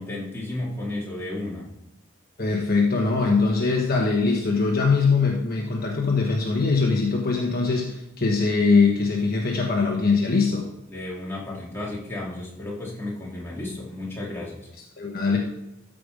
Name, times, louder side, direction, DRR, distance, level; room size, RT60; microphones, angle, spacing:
voice 1, 0.0-1.7 10.9-14.7, left 1 dB, 10° left, -5 dB, 2.6 m, -33 dB
voice 2, 2.4-10.7 15.0-15.4, left 4 dB, 45° left, 0 dB, 1.2 m, -22 dB
13.5 x 5.1 x 5.1 m, 0.90 s
head